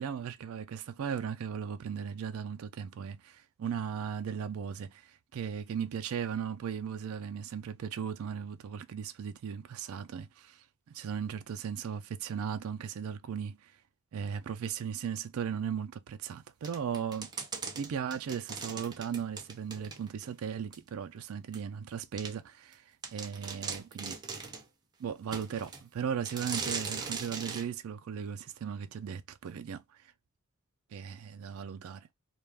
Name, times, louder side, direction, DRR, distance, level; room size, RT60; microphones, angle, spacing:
voice 1, 0.0-10.6 10.9-13.7 14.1-17.3 17.7-22.8 23.1-24.2 25.0-30.0 30.9-32.1, right 7 dB, 85° right, 0.4 m, -37 dB
sound 1, 16.6-20.3 20.7-20.8 21.5-21.6 22.2-22.3 22.7-22.8 23.0-24.7 25.3-25.8 26.3-27.7, right 5 dB, 20° right, 0.5 m, -39 dB
2.3 x 2.2 x 3.2 m
head